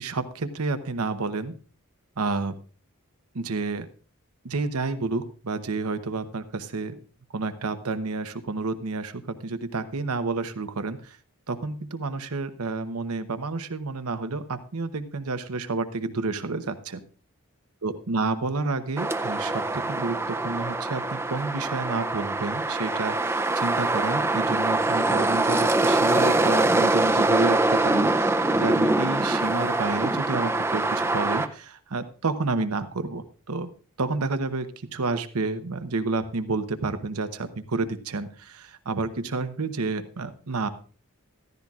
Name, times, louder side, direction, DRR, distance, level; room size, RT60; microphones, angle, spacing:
voice 1, 0.0-1.5 2.2-2.6 3.3-3.9 4.4-7.0 7.3-11.2 11.5-17.0 17.8-33.7 34.0-40.7, right 3 dB, 90° right, 10 dB, 0.9 m, -30 dB
sound 1, 19.0-31.5, right 2 dB, 10° right, 0.5 m, -24 dB
14.5 x 14.0 x 2.4 m, 0.39 s
head